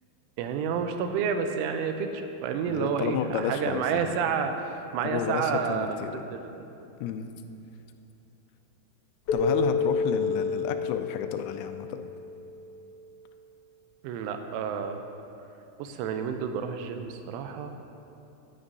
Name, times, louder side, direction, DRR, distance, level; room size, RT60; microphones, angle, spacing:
voice 1, 0.4-4.5 4.9-6.6 14.0-15.0 15.8-17.8, right 6 dB, 85° right, 6 dB, 3.1 m, -30 dB
voice 2, 2.7-4.2 5.0-6.2 7.0-7.3 9.3-12.0, left 8 dB, 85° left, 7 dB, 3.1 m, -31 dB
Keyboard (musical), 9.3-12.5, left 4 dB, 65° left, 1.9 m, -29 dB
15.0 x 9.8 x 2.7 m, 2.8 s
omnidirectional pair, 5.6 m